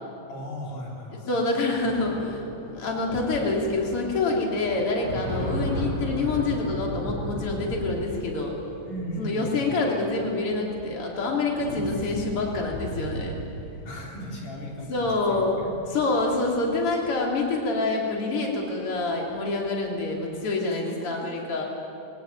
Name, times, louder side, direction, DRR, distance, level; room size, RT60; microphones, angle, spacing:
voice 1, 0.3-1.3 8.9-9.8 11.7-12.3 13.8-15.8 20.2-20.3 20.8-21.6, equal, 85° left, -2 dB, 5.1 m, -37 dB
voice 2, 1.3-8.6 9.2-13.4 14.9-15.6 15.9-21.6, left 3 dB, 45° left, -1 dB, 3.9 m, -26 dB
sound 1, 1.7-17.4 18.6-18.8 19.1-19.8, equal, 65° left, 9.0 m, -36 dB
24.0 x 17.0 x 9.1 m, 2.7 s
omnidirectional pair, 3.5 m